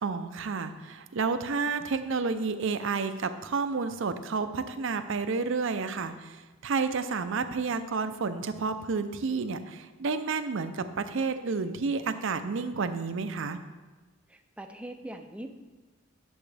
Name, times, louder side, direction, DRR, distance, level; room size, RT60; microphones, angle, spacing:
voice 1, 0.0-13.6, right 4 dB, 65° right, 10 dB, 0.6 m, -30 dB
voice 2, 14.3-15.5, right 1 dB, 5° right, 5 dB, 0.5 m, -42 dB
10.5 x 7.0 x 3.4 m, 1.2 s
head